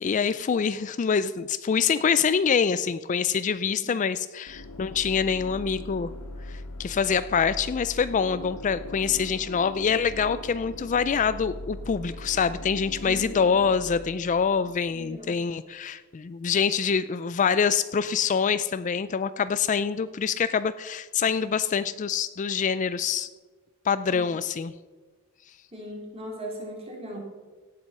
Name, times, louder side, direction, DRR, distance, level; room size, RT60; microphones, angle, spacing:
voice 1, 0.0-6.1 6.5-23.3 23.9-24.7, left 6 dB, 35° left, 14 dB, 0.3 m, -25 dB
sound 1, 4.5-15.2, left 2 dB, 85° left, 0.9 m, -40 dB
voice 2, 13.0-13.6 14.9-15.4 24.1-24.3 25.7-27.2, equal, 25° right, 0 dB, 3.1 m, -39 dB
16.5 x 7.7 x 5.5 m, 1.3 s
head